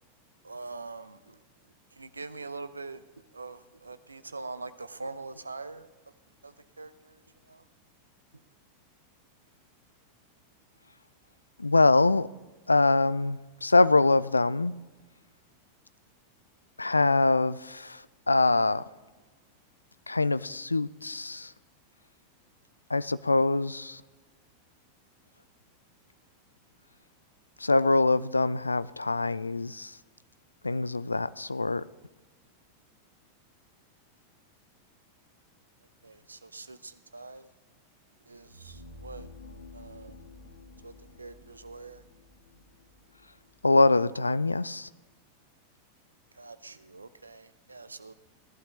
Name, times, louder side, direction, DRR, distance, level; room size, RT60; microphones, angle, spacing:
voice 1, 0.4-1.4 1.9-3.1 3.3-6.1 6.4-7.7 36.0-37.5 38.3-39.3 39.7-40.2 40.8-42.0 46.3-48.1, right 3 dB, 80° right, 14 dB, 0.6 m, -44 dB
voice 2, 11.6-12.3 12.7-14.7 16.8-18.8 20.1-21.5 22.9-24.0 27.6-29.9 30.6-31.8 43.6-44.9, left 3 dB, 80° left, 17 dB, 0.3 m, -24 dB
sound 1, 38.3-44.2, left 2 dB, 55° left, 3.2 m, -51 dB
17.0 x 11.5 x 3.2 m, 1.2 s
figure-of-eight pair, 90°, 0 cm